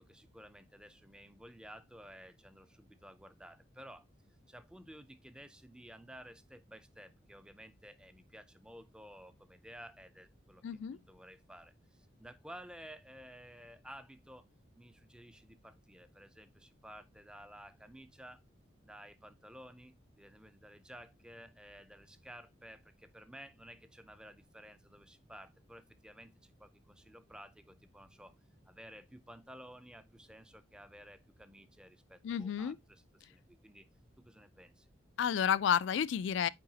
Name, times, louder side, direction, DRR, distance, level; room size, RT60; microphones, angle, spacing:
voice 1, 0.0-4.1 4.5-10.6 10.9-14.5 14.7-18.4 18.8-28.4 28.7-33.9 34.2-34.9, equal, 5° right, 0.4 m, -54 dB
voice 2, 10.6-11.0 32.2-32.8 35.2-36.5, left 8 dB, 75° left, 0.3 m, -31 dB
7.6 x 4.8 x 2.7 m
head